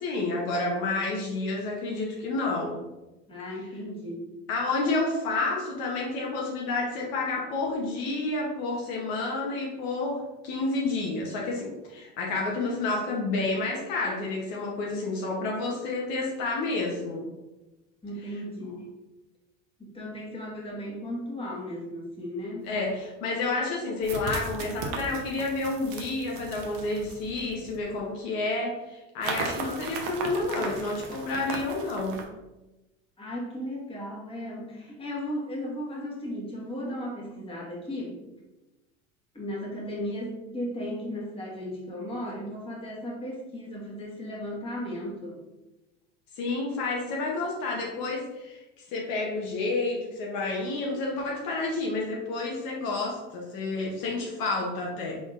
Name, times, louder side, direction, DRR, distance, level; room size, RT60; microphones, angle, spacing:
voice 1, 0.0-2.8 4.5-17.3 22.7-32.2 46.4-48.6 48.9-55.2, left 3 dB, 65° left, -2 dB, 1.0 m, -30 dB
voice 2, 3.3-4.2 18.0-18.9 19.8-22.7 33.2-38.2 39.3-45.4, equal, 15° left, -4 dB, 1.5 m, -35 dB
sound 1, 22.7-22.8 24.0-27.9 29.2-32.3, right 4 dB, 65° right, 0.8 m, -36 dB
3.8 x 3.7 x 2.5 m, 1.0 s
hypercardioid pair, 80°, 38 cm